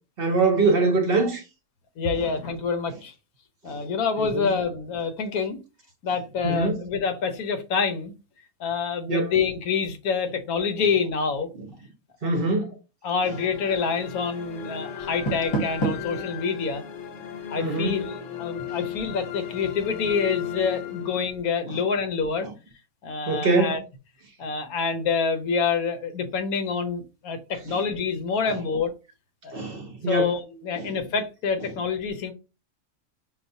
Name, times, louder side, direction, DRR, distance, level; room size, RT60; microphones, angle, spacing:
voice 1, 0.2-1.4 3.7-3.8 4.2-4.5 6.4-6.8 9.1-9.3 12.2-12.7 17.6-17.9 18.7-18.8 23.3-23.8 29.5-30.3 30.8-30.9, right 3 dB, 55° right, 0.7 m, -23 dB
voice 2, 2.0-3.1 3.6-5.6 6.0-8.1 8.6-11.5 12.2-12.3 13.0-16.8 17.5-22.5 23.0-23.8 24.4-28.9 29.4-29.6 30.1-32.3, left 5 dB, 90° left, 1.3 m, -27 dB
sound 1, 13.2-21.6, left 9 dB, 65° left, 1.0 m, -36 dB
Door, 15.0-16.2, right 2 dB, 25° left, 0.8 m, -28 dB
5.9 x 2.2 x 2.6 m
omnidirectional pair, 1.5 m